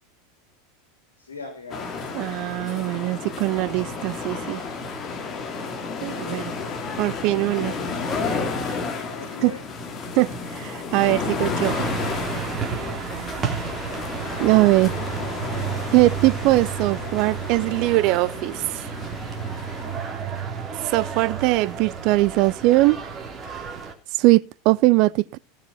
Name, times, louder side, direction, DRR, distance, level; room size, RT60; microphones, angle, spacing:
voice 1, 1.2-2.5 3.1-3.3 6.1-6.7 9.1-9.6, left 4 dB, 75° left, 3.3 m, -41 dB
sound 1, 1.7-20.0, left 4 dB, 30° left, 4.2 m, -32 dB
voice 2, 2.1-4.7 6.0-6.5 7.0-7.8 9.4-9.6 10.2-11.8 14.4-14.9 15.9-18.9 20.8-23.0 24.2-25.4, right 19 dB, 50° right, 0.6 m, -21 dB
sound 2, 11.6-23.9, right 6 dB, 25° right, 3.2 m, -32 dB
16.5 x 7.2 x 5.8 m
figure-of-eight pair, 80°, 0 cm